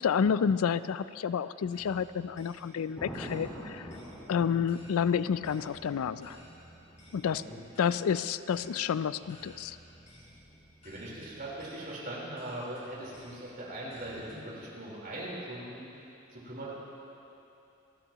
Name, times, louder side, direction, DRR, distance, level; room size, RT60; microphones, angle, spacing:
voice 1, 0.0-3.9 4.3-6.4 7.1-7.4 7.8-9.8, left 7 dB, 85° left, 15 dB, 0.4 m, -29 dB
sound 1, 1.7-14.4, equal, 35° left, 3.6 m, -57 dB
Thunder, 2.9-11.0 13.7-14.1, equal, 15° left, 1.9 m, -48 dB
voice 2, 10.8-16.0 16.3-16.7, right 1 dB, 45° right, -6 dB, 4.1 m, -40 dB
28.5 x 12.5 x 3.0 m, 2.8 s
head